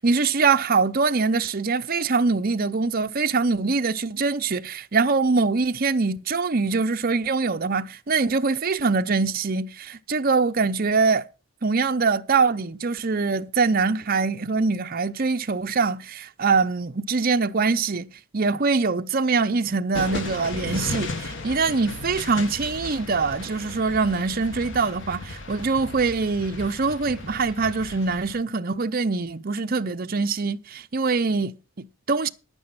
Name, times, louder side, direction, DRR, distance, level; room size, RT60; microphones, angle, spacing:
voice 1, 0.0-11.3 11.6-18.1 18.3-32.3, right 4 dB, 45° right, 0.6 m, -23 dB
sound 1, 19.9-28.4, left 2 dB, 60° left, 1.4 m, -35 dB
10.5 x 9.1 x 5.7 m
head